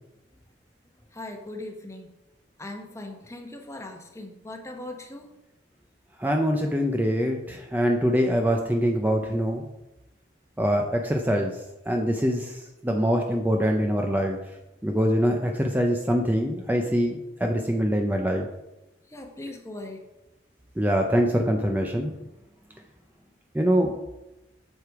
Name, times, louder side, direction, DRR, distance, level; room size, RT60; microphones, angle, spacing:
voice 1, 1.1-2.1 2.6-5.3 19.1-20.1, left 2 dB, 15° left, 1.1 m, -39 dB
voice 2, 6.2-9.6 10.6-14.4 14.8-18.5 20.8-22.1 23.5-24.0, equal, 10° right, 0.6 m, -24 dB
7.8 x 6.8 x 4.7 m
head